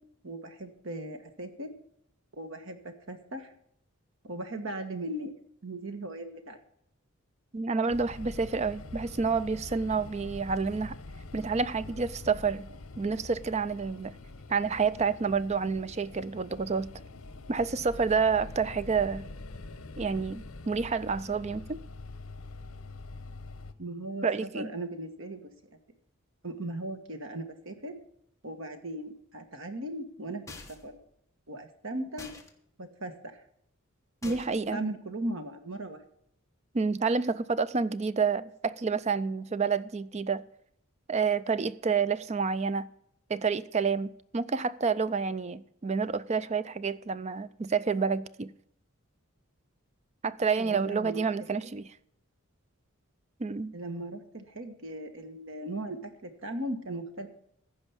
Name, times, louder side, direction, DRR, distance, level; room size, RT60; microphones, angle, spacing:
voice 1, 0.2-1.7 2.4-3.5 4.2-5.3 5.6-6.6 23.8-25.5 26.4-28.0 28.4-31.0 31.5-32.3 32.8-33.4 34.2-36.0 50.6-51.3 51.6-51.7 53.7-57.3, right 1 dB, 65° right, 1.5 m, -38 dB
voice 2, 7.5-11.0 11.3-12.7 13.0-14.2 14.5-16.9 17.5-19.3 20.0-21.8 24.2-24.7 34.2-34.8 36.7-40.4 41.1-42.9 43.3-48.5 50.2-51.9 53.4-53.7, right 5 dB, 30° right, 0.4 m, -29 dB
sound 1, 7.9-23.7, left 2 dB, 80° left, 0.9 m, -45 dB
sound 2, 30.5-31.0 32.2-32.5 34.2-34.7, left 3 dB, 15° left, 1.2 m, -46 dB
15.0 x 5.2 x 7.1 m
head